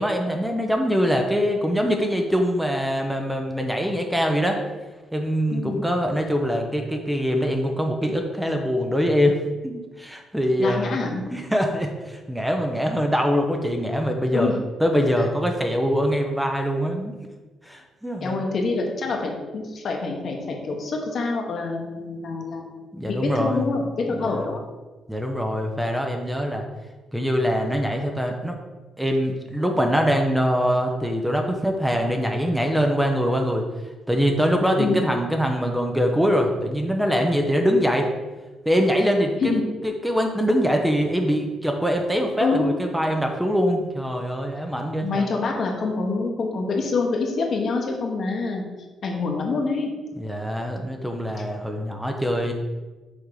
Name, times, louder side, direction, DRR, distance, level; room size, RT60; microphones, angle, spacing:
voice 1, 0.0-4.6 5.1-11.0 11.3-14.5 14.8-17.2 17.6-18.4 22.9-23.6 24.1-24.5 25.1-26.6 27.1-28.6 29.0-33.6 34.1-38.1 38.7-39.5 39.8-45.3 50.2-52.5, equal, 5° right, 3 dB, 0.7 m, -23 dB
voice 2, 5.5-5.8 10.6-11.2 14.3-14.6 18.2-22.8 23.1-24.6 34.8-35.1 39.4-39.6 42.4-42.7 45.0-48.6 49.0-49.9, left 3 dB, 55° left, 1 dB, 1.2 m, -26 dB
6.4 x 3.6 x 4.8 m, 1.2 s
cardioid pair, 90°, 0 cm